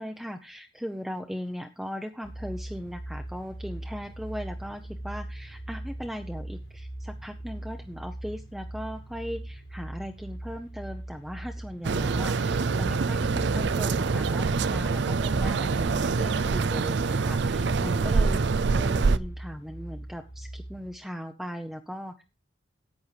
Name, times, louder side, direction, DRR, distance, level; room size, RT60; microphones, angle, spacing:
voice 1, 0.0-18.4 18.7-22.2, equal, ahead, 5 dB, 0.7 m, -38 dB
sound 1, 2.2-20.9, right 1 dB, 70° left, 3.0 m, -40 dB
sound 2, 11.8-19.2, right 4 dB, 65° right, 0.5 m, -25 dB
10.5 x 8.7 x 5.0 m, 0.29 s
head